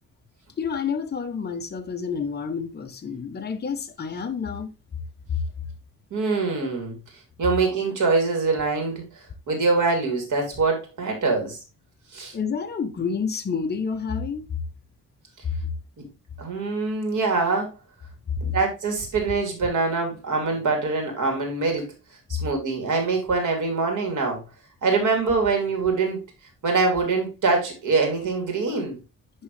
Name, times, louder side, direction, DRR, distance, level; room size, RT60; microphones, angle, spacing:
voice 1, 0.6-4.7 5.3-5.4 12.3-14.5 15.6-15.7 18.5-18.6, left 6 dB, 30° left, 0.8 m, -29 dB
voice 2, 6.1-6.9 7.4-11.6 12.1-12.3 16.0-16.1 16.4-17.7 18.4-21.9 22.4-24.4 24.8-26.2 26.6-29.0, right 4 dB, 70° right, 2.9 m, -24 dB
11.0 x 3.7 x 3.2 m
wide cardioid pair, 160°, 32 cm